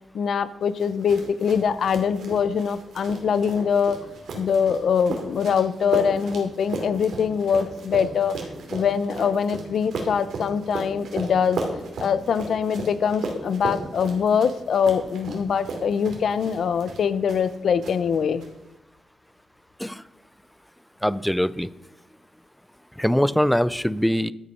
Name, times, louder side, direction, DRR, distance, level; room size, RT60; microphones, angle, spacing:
voice 1, 0.1-4.1 4.3-8.4 8.7-11.6 12.0-18.4, left 7 dB, 55° left, 15 dB, 0.7 m, -23 dB
sound 1, 0.8-17.5 17.8-18.5, right 3 dB, 65° right, 2.7 m, -35 dB
voice 2, 21.0-21.7 23.0-24.3, equal, 5° left, 18 dB, 0.3 m, -22 dB
12.5 x 8.2 x 5.5 m, 0.93 s
wide cardioid pair, 155°, 0 cm